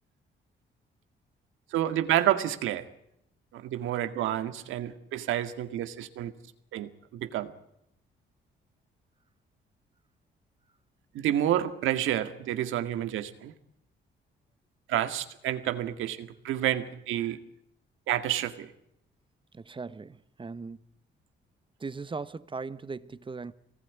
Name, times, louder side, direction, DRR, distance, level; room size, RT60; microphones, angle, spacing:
voice 1, 1.7-2.9 3.5-6.3 6.7-7.5 11.1-13.5 14.9-17.4 18.1-18.7, right 12 dB, 90° right, 2.0 m, -29 dB
voice 2, 19.5-20.8 21.8-23.5, right 4 dB, 25° right, 1.2 m, -38 dB
24.0 x 19.0 x 9.5 m
cardioid pair, 90°, 20 cm